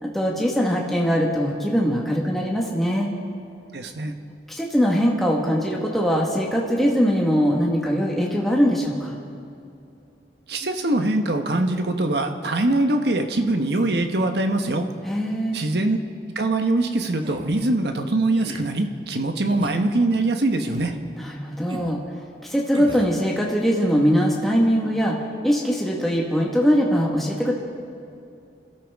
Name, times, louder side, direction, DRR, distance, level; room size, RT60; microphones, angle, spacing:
voice 1, 0.0-3.1 4.5-9.2 15.0-15.6 21.2-22.0 22.4-25.2 25.4-27.5, equal, ahead, -3 dB, 1.4 m, -21 dB
voice 2, 3.7-4.1 10.5-14.9 15.5-16.0 16.3-20.9, right 2 dB, 70° right, 5 dB, 1.1 m, -23 dB
sound 1, 17.2-17.6 18.4-18.7 19.5-19.8 20.6-21.0 21.7-22.0 22.7-23.1, right 1 dB, 30° right, 0.9 m, -36 dB
26.5 x 13.0 x 3.6 m, 2.6 s
head